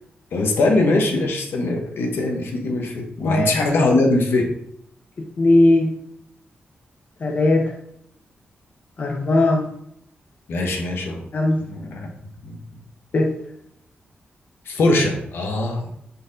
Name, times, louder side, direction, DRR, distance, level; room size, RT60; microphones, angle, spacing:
voice 1, 0.3-4.5 10.5-11.2 11.6-12.1 12.4-12.6 14.7-15.9, left 2 dB, 75° left, 2 dB, 0.8 m, -21 dB
voice 2, 5.2-5.9 7.2-7.7 9.0-9.7 11.3-11.6 13.1-13.3, left 2 dB, 40° left, 1 dB, 0.5 m, -18 dB
4.1 x 3.8 x 2.6 m, 0.73 s
wide cardioid pair, 175°, 4 cm